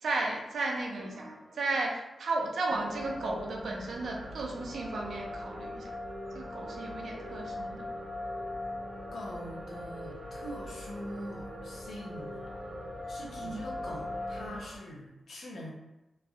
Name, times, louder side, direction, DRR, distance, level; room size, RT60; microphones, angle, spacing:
voice 1, 0.0-5.8 6.3-7.9 13.4-13.6, right 2 dB, 75° right, 0 dB, 0.5 m, -34 dB
sound 1, 1.0-2.1 2.8-14.8, equal, 45° right, 0.8 m, -49 dB
sound 2, 2.7-14.5, left 1 dB, 35° left, 0.6 m, -41 dB
voice 2, 9.1-12.3 13.1-15.7, left 1 dB, 80° left, -3 dB, 0.7 m, -43 dB
3.0 x 2.6 x 2.3 m, 0.98 s
wide cardioid pair, 155°, 0 cm